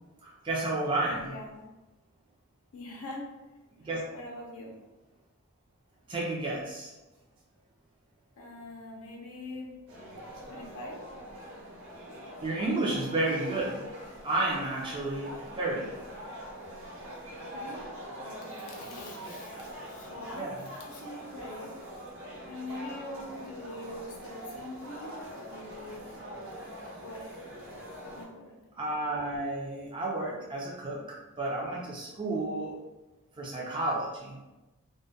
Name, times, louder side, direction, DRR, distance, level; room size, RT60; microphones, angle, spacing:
voice 1, 0.2-1.3 3.8-4.0 6.1-6.9 12.4-13.9 14.2-15.9 19.2-19.3 20.3-20.6 28.8-31.0 31.4-32.7 33.4-34.4, right 2 dB, 20° right, -4 dB, 0.4 m, -31 dB
voice 2, 1.2-1.7 2.7-3.3 4.1-4.8 8.4-10.2 10.4-11.0 17.5-17.9 18.2-21.7 22.5-26.3 27.0-27.4 28.0-28.6, left 1 dB, 80° left, -1 dB, 0.5 m, -43 dB
sound 1, 9.9-28.2, equal, 60° right, 0.7 m, -44 dB
2.2 x 2.1 x 2.6 m, 1.1 s
head